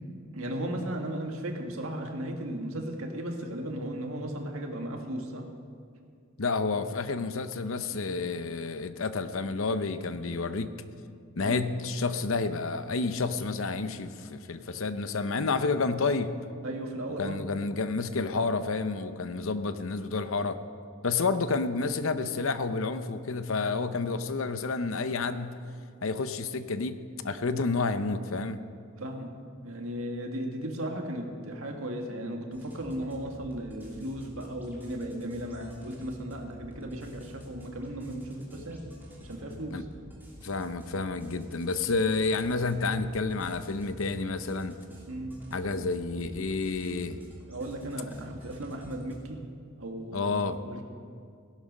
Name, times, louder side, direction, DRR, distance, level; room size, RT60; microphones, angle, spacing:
voice 1, 0.3-5.5 11.4-11.6 16.6-17.4 27.4-27.7 29.0-29.4 29.6-38.9 39.2-39.8 45.1-45.4 47.5-49.4 49.8-50.3 50.6-50.8, right 1 dB, 75° right, 2 dB, 1.8 m, -36 dB
voice 2, 6.4-10.7 11.4-16.3 17.2-20.6 21.0-25.6 26.0-27.0 27.2-28.6 39.7-39.8 40.4-44.8 45.5-47.2 50.1-50.6, left 4 dB, 65° left, 11 dB, 0.7 m, -30 dB
sound 1, 32.5-49.2, equal, 10° right, 2.8 m, -49 dB
17.0 x 11.5 x 5.4 m, 2.3 s
head